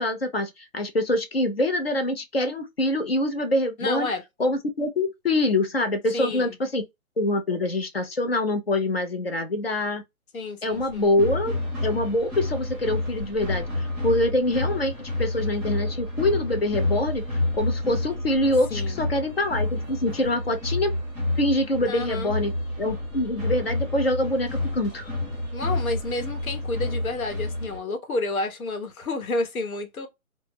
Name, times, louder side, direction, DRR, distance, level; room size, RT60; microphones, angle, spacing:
voice 1, 0.0-4.1 4.4-6.8 7.2-10.0 10.6-20.9 21.4-22.5 22.8-25.1, left 1 dB, 45° left, 0.5 m, -25 dB
voice 2, 3.8-4.2 6.1-6.6 10.3-11.1 18.7-19.0 21.9-22.3 25.5-30.1, left 2 dB, 75° left, 0.9 m, -30 dB
sound 1, 10.7-27.8, left 2 dB, 10° right, 0.8 m, -29 dB
2.0 x 2.0 x 3.1 m
hypercardioid pair, 180°, 42 cm